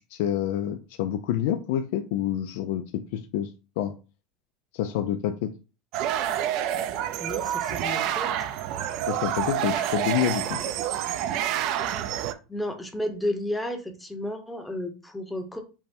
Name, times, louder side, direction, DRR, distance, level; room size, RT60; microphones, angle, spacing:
voice 1, 0.1-3.5 3.8-3.9 4.7-5.5 9.1-10.6, left 10 dB, 75° left, 6 dB, 0.4 m, -27 dB
sound 1, 5.9-12.3, right 10 dB, 55° right, 0.4 m, -28 dB
voice 2, 7.2-8.5 12.1-15.6, left 1 dB, 5° left, 5 dB, 0.8 m, -33 dB
5.4 x 2.1 x 4.3 m, 0.32 s
supercardioid pair, 145°, 0 cm